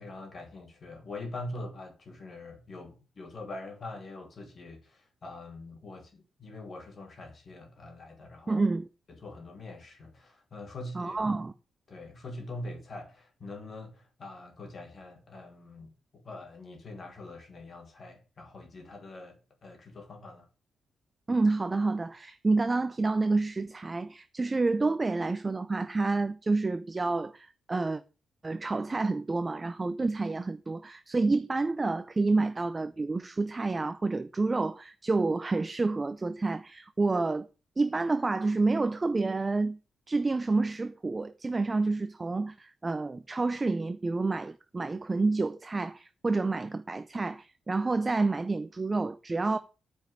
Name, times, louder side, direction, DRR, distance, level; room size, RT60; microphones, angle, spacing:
voice 1, 0.0-8.7 9.1-11.2 11.9-20.5, left 2 dB, 35° left, 2.7 m, -44 dB
voice 2, 8.5-8.9 10.9-11.5 21.3-28.0 28.4-37.5 37.8-39.8 40.1-49.6, right 3 dB, 20° right, 0.5 m, -29 dB
9.1 x 5.2 x 7.7 m
wide cardioid pair, 165°, 0 cm